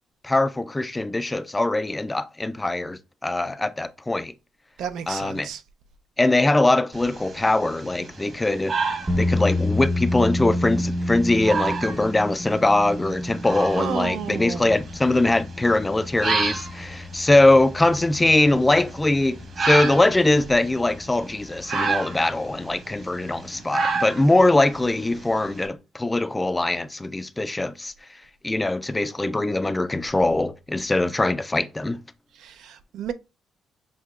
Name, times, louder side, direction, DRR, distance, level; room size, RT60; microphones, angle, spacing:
voice 1, 0.2-4.3 5.1-5.5 6.2-8.7 9.1-27.9 28.4-32.0, left 2 dB, 15° left, 0.4 m, -22 dB
voice 2, 4.8-5.6 13.7-14.8 32.3-33.1, right 8 dB, 75° right, 0.4 m, -32 dB
sound 1, 6.9-25.6, right 4 dB, 45° right, 1.3 m, -32 dB
sound 2, 9.1-21.6, left 1 dB, 15° right, 0.7 m, -30 dB
6.4 x 2.9 x 2.3 m
cardioid pair, 115°, 0 cm